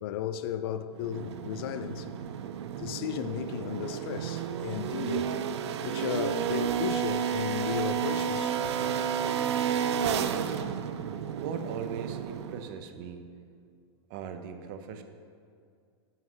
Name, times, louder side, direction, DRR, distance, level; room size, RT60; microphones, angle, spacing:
voice 1, 0.0-2.1 2.8-5.4 5.8-8.8, left 9 dB, 60° left, 0.5 m, -35 dB
sound 1, 1.0-12.8, right 8 dB, 80° right, 0.5 m, -31 dB
voice 2, 11.4-13.3 14.1-15.0, right 7 dB, 50° right, 0.7 m, -39 dB
7.4 x 5.7 x 5.7 m
hypercardioid pair, 135°, 14 cm